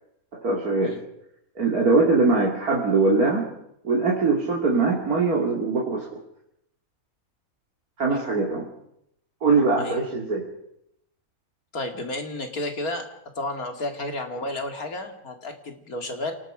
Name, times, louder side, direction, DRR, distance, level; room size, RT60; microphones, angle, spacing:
voice 1, 0.3-1.0 1.6-3.4 3.8-6.1 8.0-8.7 9.4-10.4, right 3 dB, 85° right, -3 dB, 3.1 m, -22 dB
voice 2, 11.7-13.1 13.3-16.3, left 2 dB, 75° left, 4 dB, 3.0 m, -32 dB
28.0 x 19.0 x 5.1 m, 0.77 s
omnidirectional pair, 1.5 m